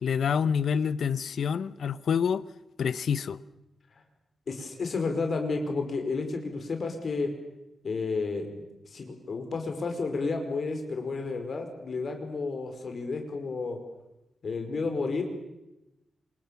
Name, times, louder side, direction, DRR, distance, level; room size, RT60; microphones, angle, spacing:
voice 1, 0.0-2.4 2.8-3.4, left 7 dB, 75° left, 1.0 m, -27 dB
voice 2, 4.5-7.3 7.8-13.8 14.4-15.2, left 4 dB, 45° left, 5.3 m, -31 dB
28.0 x 27.0 x 7.2 m
wide cardioid pair, 180°, 0 cm